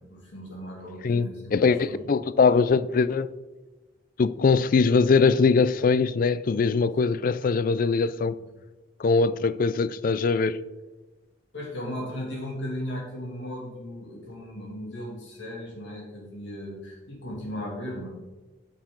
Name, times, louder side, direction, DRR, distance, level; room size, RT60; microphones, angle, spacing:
voice 1, 0.0-2.1 11.5-18.1, equal, 75° left, 2.5 m, -36 dB
voice 2, 1.0-3.3 4.2-8.3 9.0-10.6, left 4 dB, 50° left, 0.4 m, -22 dB
10.0 x 6.6 x 3.9 m
head